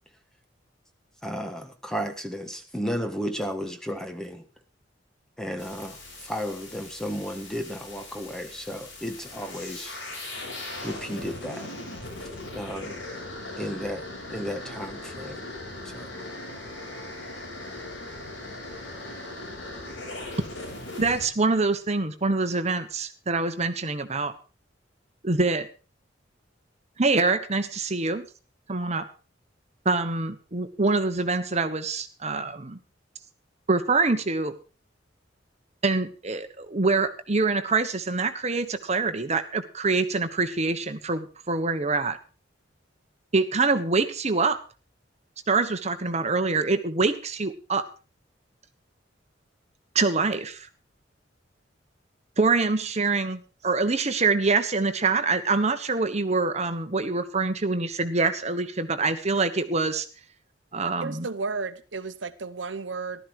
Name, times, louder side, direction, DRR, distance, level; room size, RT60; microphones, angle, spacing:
voice 1, 1.2-4.4 5.4-10.0 10.8-11.7 12.5-13.0 13.6-15.4 15.9-16.1, equal, 5° left, 1.5 m, -33 dB
sound 1, 5.6-21.3, left 2 dB, 80° left, 6.9 m, -39 dB
voice 2, 21.0-24.3 25.2-25.7 27.0-28.3 28.7-29.1 29.8-32.8 33.7-34.5 35.8-42.2 43.3-44.6 45.5-47.9 49.9-50.7 52.4-60.0 60.7-61.2, right 3 dB, 35° right, 1.3 m, -25 dB
voice 3, 61.0-63.2, right 4 dB, 75° right, 0.9 m, -33 dB
14.5 x 12.5 x 4.8 m
head